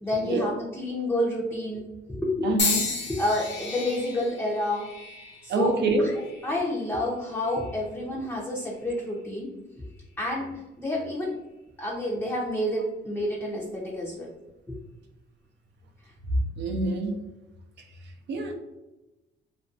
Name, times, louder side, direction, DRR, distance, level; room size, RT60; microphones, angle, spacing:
voice 1, 0.0-1.8 2.1-2.5 3.1-4.9 5.4-9.5 10.2-10.5 10.8-11.3 11.8-14.3, left 1 dB, 10° left, -4 dB, 0.5 m, -29 dB
voice 2, 2.4-2.8 5.5-6.1 16.6-17.1 18.3-18.5, right 3 dB, 60° right, 3 dB, 0.5 m, -26 dB
sound 1, 2.6-6.7 7.4-7.9 8.8-9.0, left 4 dB, 70° left, 0.7 m, -33 dB
2.5 x 2.2 x 2.4 m, 1.0 s
cardioid pair, 90°, 20 cm